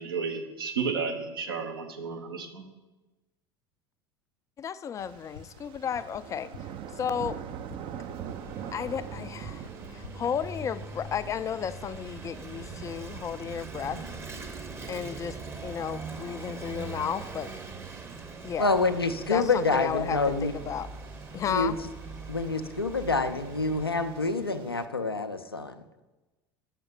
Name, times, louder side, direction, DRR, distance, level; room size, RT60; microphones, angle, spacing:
voice 1, 0.0-2.7, right 5 dB, 70° right, 4 dB, 1.0 m, -32 dB
voice 2, 4.6-7.4 8.7-14.0 14.4-14.6 14.9-15.4 15.6-17.5 18.4-18.7 19.3-20.9 21.3-21.8, left 8 dB, 25° left, 15 dB, 0.3 m, -33 dB
sound 1, 5.0-24.9, right 9 dB, 45° right, 0.5 m, -46 dB
sound 2, 5.2-11.0, left 7 dB, 70° left, 0.9 m, -49 dB
Vehicle / Engine, 7.9-24.4, right 3 dB, 20° right, 0.9 m, -42 dB
voice 3, 18.6-20.5 21.5-21.8 22.3-25.8, left 3 dB, 90° left, 8 dB, 0.4 m, -27 dB
7.0 x 5.8 x 5.3 m, 1.1 s
figure-of-eight pair, 70°, 12 cm